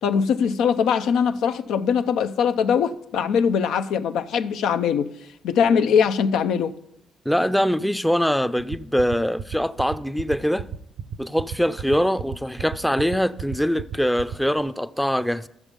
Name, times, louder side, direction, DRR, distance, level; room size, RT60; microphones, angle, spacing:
voice 1, 0.0-5.1 5.4-6.8, left 7 dB, 85° left, 0.6 m, -21 dB
voice 2, 7.3-10.7 11.2-15.5, equal, 5° left, 0.5 m, -23 dB
sound 1, 8.6-14.6, right 8 dB, 85° right, 0.7 m, -32 dB
13.0 x 7.2 x 5.2 m
cardioid pair, 90°, 0 cm